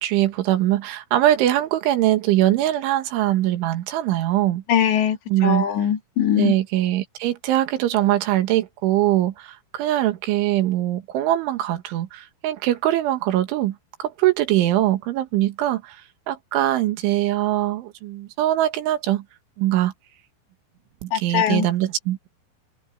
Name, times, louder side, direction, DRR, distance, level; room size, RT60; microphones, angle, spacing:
voice 1, 0.0-4.6 5.3-5.7 6.4-19.2 19.6-19.9 21.0-22.3, right 14 dB, 85° right, 4.1 m, -22 dB
voice 2, 4.7-5.2 5.4-6.5 21.1-21.7, left 9 dB, 70° left, 4.4 m, -21 dB
open air
omnidirectional pair, 5.3 m